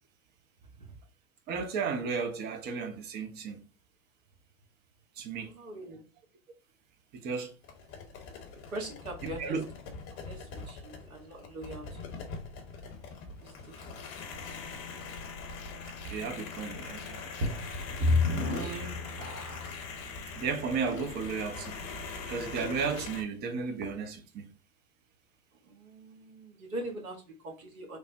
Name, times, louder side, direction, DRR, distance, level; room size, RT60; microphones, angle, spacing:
voice 1, 1.5-3.6 5.2-5.5 7.1-7.5 9.4-9.6 16.0-17.6 18.5-19.0 20.3-21.8 22.2-24.5, right 5 dB, 25° right, 0.4 m, -34 dB
voice 2, 5.3-6.0 8.7-9.6 10.1-12.2 13.4-14.0 25.6-28.0, right 1 dB, 80° right, 1.2 m, -42 dB
sound 1, 7.6-23.2, left 4 dB, 45° left, 0.9 m, -42 dB
sound 2, 17.4-19.8 20.5-20.6 21.2-21.3, left 3 dB, 45° right, 1.1 m, -29 dB
3.2 x 2.0 x 2.6 m
figure-of-eight pair, 90°, 42 cm